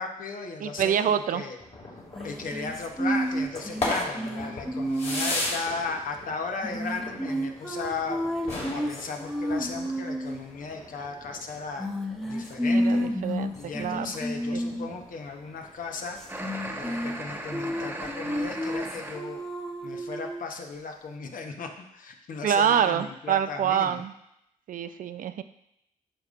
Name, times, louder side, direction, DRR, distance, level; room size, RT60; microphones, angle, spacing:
voice 1, 0.0-1.6 2.2-11.9 12.2-13.1 13.6-16.2 16.8-19.4 19.8-24.0, left 4 dB, 70° left, 3 dB, 1.0 m, -36 dB
voice 2, 0.6-1.4 12.7-14.1 14.5-14.6 22.4-24.1 24.7-25.4, right 8 dB, 65° right, 11 dB, 0.4 m, -26 dB
sound 1, 1.6-17.9, left 2 dB, 50° left, 2.4 m, -38 dB
sound 2, 2.1-5.5 6.6-10.4 11.8-14.9 16.2-17.2 17.5-20.4, equal, ahead, 1.0 m, -30 dB
sound 3, 16.3-19.2, right 1 dB, 15° right, 1.2 m, -37 dB
8.8 x 5.2 x 2.5 m, 0.78 s
cardioid pair, 60°, 15 cm